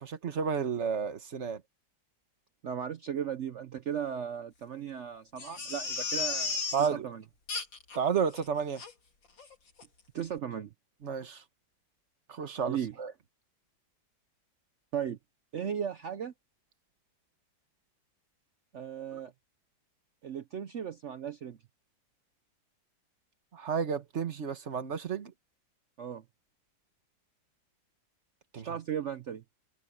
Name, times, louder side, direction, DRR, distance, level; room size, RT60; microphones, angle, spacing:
voice 1, 0.0-1.6 6.7-7.0 7.9-8.8 11.0-11.4 12.3-13.1 19.1-19.2 23.5-25.3 28.5-28.7, right 6 dB, 40° right, 1.5 m, -31 dB
voice 2, 2.6-7.2 10.1-10.7 12.7-12.9 14.9-15.2 15.5-16.3 18.7-19.3 20.2-21.6 26.0-26.2 28.6-29.4, right 8 dB, 70° right, 0.7 m, -36 dB
Crying sobbing, 5.4-6.9 7.5-8.0 8.3-8.4 8.8-8.9 9.4-9.5 9.8-9.9, left 4 dB, 80° left, 3.7 m, -34 dB
omnidirectional pair, 2.0 m